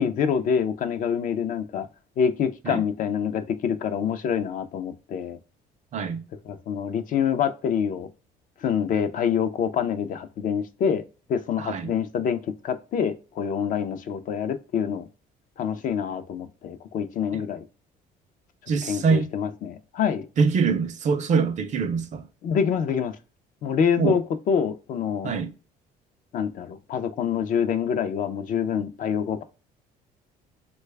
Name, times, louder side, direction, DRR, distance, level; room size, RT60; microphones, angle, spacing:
voice 1, 0.0-1.9 2.2-5.4 6.5-8.1 8.6-11.0 11.3-15.1 15.6-17.6 18.9-20.3 22.4-23.2 23.6-25.3 26.3-29.4, left 7 dB, 50° left, 0.4 m, -26 dB
voice 2, 5.9-6.2 11.6-11.9 17.3-17.4 18.7-19.3 20.4-22.3 24.0-24.2 25.2-25.5, right 5 dB, 45° right, 0.5 m, -24 dB
3.1 x 2.2 x 3.2 m
cardioid pair, 110°, 17 cm